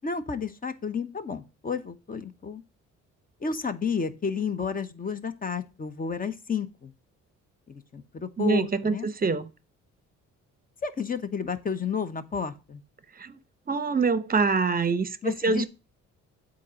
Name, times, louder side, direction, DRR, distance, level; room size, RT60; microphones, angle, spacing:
voice 1, 0.0-2.6 3.4-6.9 7.7-9.1 10.8-12.8 15.2-15.7, left 5 dB, 30° left, 1.0 m, -31 dB
voice 2, 8.4-9.5 13.2-13.4 13.7-15.7, right 4 dB, 30° right, 0.8 m, -25 dB
8.4 x 4.2 x 6.3 m
cardioid pair, 90°, 30 cm